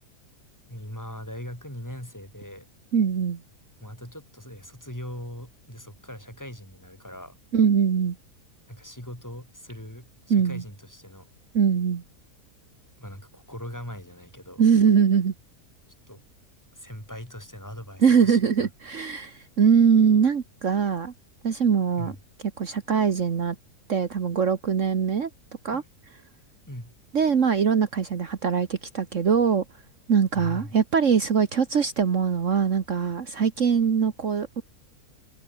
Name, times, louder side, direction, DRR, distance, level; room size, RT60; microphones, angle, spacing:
voice 1, 0.7-2.7 3.8-7.4 8.7-11.3 13.0-14.6 16.1-16.2 16.7-18.7 22.0-22.2 25.7-25.9 26.7-26.9 30.3-30.7, equal, 10° left, 7.1 m, -40 dB
voice 2, 2.9-3.4 7.5-8.2 10.3-10.6 11.5-12.0 14.6-15.3 18.0-21.1 21.4-22.1 22.6-23.6 23.9-25.3 25.6-25.8 27.1-29.6 30.1-34.6, right 6 dB, 55° right, 1.6 m, -22 dB
omnidirectional pair, 1.6 m